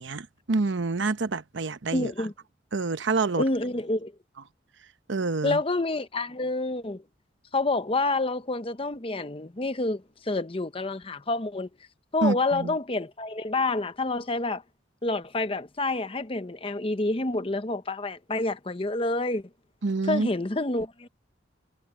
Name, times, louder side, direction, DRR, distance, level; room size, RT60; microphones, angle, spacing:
voice 1, 0.0-2.1 2.7-3.4 5.1-5.6 12.2-12.7 19.8-20.3, right 3 dB, 75° right, 0.8 m, -27 dB
voice 2, 1.9-2.3 3.4-4.1 5.4-7.0 7.5-11.7 12.1-14.6 15.0-19.5 20.1-21.1, left 2 dB, 30° left, 0.8 m, -28 dB
head